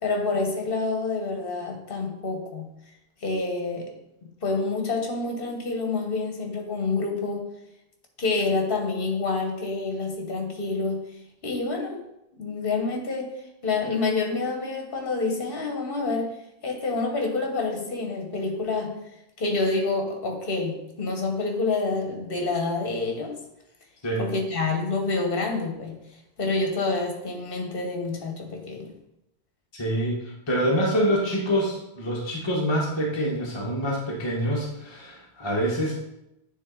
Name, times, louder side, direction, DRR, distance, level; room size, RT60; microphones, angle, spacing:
voice 1, 0.0-2.7 3.2-3.9 4.4-7.4 8.2-11.0 11.4-12.0 12.3-13.3 13.6-16.4 16.6-18.9 19.4-23.3 24.2-26.0 26.4-28.9, left 3 dB, 60° left, 2 dB, 1.4 m, -27 dB
voice 2, 29.7-35.9, equal, 25° left, -2 dB, 1.1 m, -26 dB
9.0 x 3.3 x 3.8 m, 0.86 s
omnidirectional pair, 1.1 m